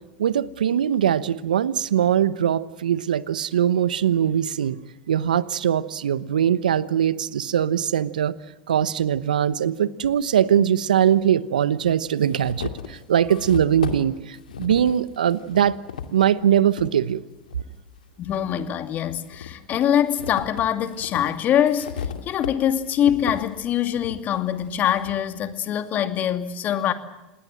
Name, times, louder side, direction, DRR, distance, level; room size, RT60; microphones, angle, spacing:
voice 1, 0.2-4.8 5.1-8.4 8.7-15.8 16.1-17.2, right 9 dB, 80° right, 18 dB, 1.0 m, -21 dB
sound 1, 10.0-10.1 11.2-11.3 11.8-16.9 17.4-18.6 19.1-25.2, left 7 dB, 85° left, 2.3 m, -36 dB
voice 2, 18.2-26.9, left 10 dB, 40° left, 9 dB, 2.5 m, -24 dB
27.5 x 20.0 x 7.7 m, 1.1 s
hypercardioid pair, 90°, 4 cm